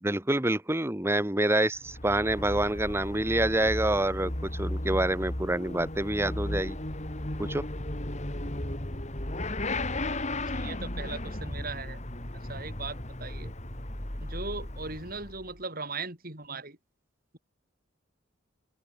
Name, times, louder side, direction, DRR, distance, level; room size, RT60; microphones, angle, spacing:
voice 1, 0.0-6.8 7.4-7.6, right 1 dB, 10° right, 1.1 m, -27 dB
Motorcycle / Accelerating revving vroom, 1.7-15.6, left 1 dB, 35° left, 2.9 m, -35 dB
voice 2, 9.9-12.0 12.3-13.5 14.2-16.8, right 4 dB, 45° right, 4.9 m, -39 dB
open air
head